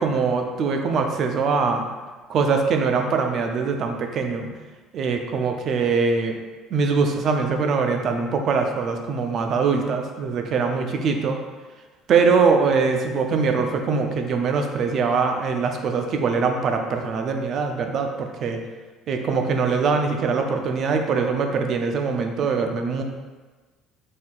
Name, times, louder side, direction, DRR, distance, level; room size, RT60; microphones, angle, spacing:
voice 1, 0.0-1.9 2.3-4.5 4.9-6.4 6.7-11.4 12.1-18.6 19.1-23.0, right 5 dB, 35° right, 4 dB, 0.4 m, -22 dB
4.1 x 2.6 x 3.8 m, 1.3 s
cardioid pair, 180°, 0 cm